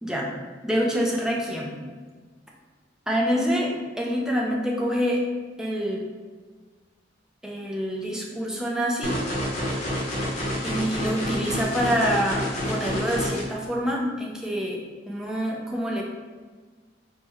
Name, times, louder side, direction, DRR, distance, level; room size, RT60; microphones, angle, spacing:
voice 1, 0.6-1.8 3.1-5.2 5.6-6.0 7.4-9.2 10.6-16.0, equal, 5° right, -2 dB, 0.3 m, -26 dB
sound 1, 9.0-13.4, equal, 40° left, 0.7 m, -28 dB
3.3 x 2.1 x 3.0 m, 1.5 s
head